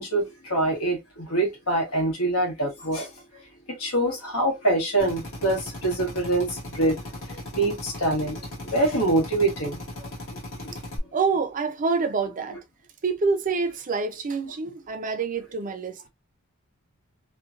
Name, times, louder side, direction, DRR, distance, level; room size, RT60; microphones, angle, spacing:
voice 1, 0.0-3.1 3.7-7.0 7.3-8.4 8.7-10.1 10.6-10.7, right 2 dB, 80° left, 1.4 m, -25 dB
Drill, 5.0-11.0, left 1 dB, 65° left, 1.5 m, -37 dB
voice 2, 11.1-12.6 13.0-16.0, right 4 dB, 40° right, 0.5 m, -26 dB
3.1 x 2.3 x 2.4 m
head